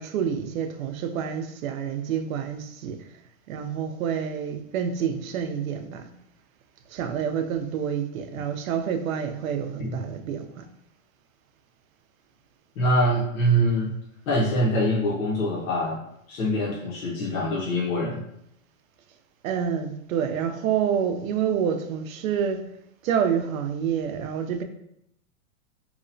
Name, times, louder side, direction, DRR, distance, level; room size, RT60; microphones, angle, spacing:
voice 1, 0.0-3.0 3.5-6.1 6.9-10.7 19.4-22.7 23.0-24.6, right 8 dB, 85° right, 6 dB, 0.5 m, -28 dB
voice 2, 12.8-13.9 14.3-16.0 16.3-18.2, equal, 85° left, -4 dB, 0.8 m, -24 dB
2.9 x 2.1 x 2.5 m, 0.75 s
supercardioid pair, 180°, 40 cm